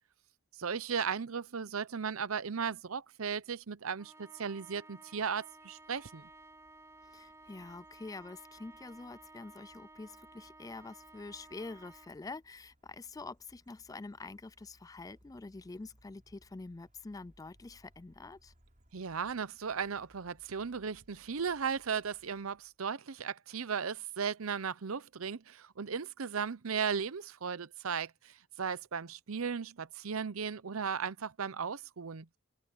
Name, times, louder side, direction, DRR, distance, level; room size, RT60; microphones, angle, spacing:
voice 1, 0.6-6.3 18.9-32.4, right 6 dB, 85° right, 0.7 m, -36 dB
Trumpet, 4.0-12.1, right 2 dB, 15° right, 6.1 m, -56 dB
sound 1, 5.3-22.9, equal, 40° right, 4.6 m, -68 dB
voice 2, 7.0-18.5, left 3 dB, 15° left, 0.4 m, -46 dB
head